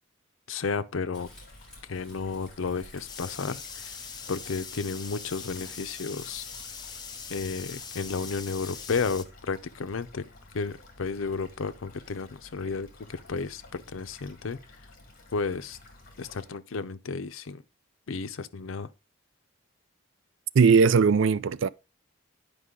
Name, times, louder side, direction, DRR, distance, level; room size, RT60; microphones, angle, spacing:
voice 1, 0.5-1.3 1.9-4.0 4.3-6.4 7.3-10.3 10.5-14.6 15.3-15.8 16.2-17.6 18.1-18.9, left 4 dB, 85° left, 0.6 m, -32 dB
Crumpling crinkling, 1.1-8.5, left 2 dB, 5° left, 4.9 m, -55 dB
sound 1, 1.2-16.5, left 2 dB, 45° left, 1.9 m, -52 dB
sound 2, 3.1-9.2, left 6 dB, 20° left, 0.7 m, -41 dB
voice 2, 20.5-21.7, right 5 dB, 70° right, 0.4 m, -19 dB
9.8 x 5.2 x 3.7 m
head